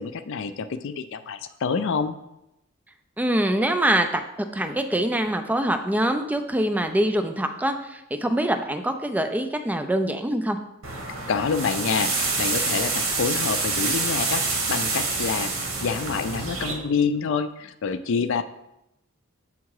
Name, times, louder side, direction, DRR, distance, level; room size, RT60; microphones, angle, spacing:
voice 1, 0.0-2.2 11.3-18.4, left 5 dB, 65° left, 11 dB, 0.4 m, -27 dB
voice 2, 3.2-4.2 4.5-10.6, right 1 dB, 10° right, 6 dB, 0.4 m, -24 dB
sound 1, 10.8-16.7, right 3 dB, 70° right, 1.3 m, -27 dB
7.1 x 3.7 x 4.7 m, 0.87 s
head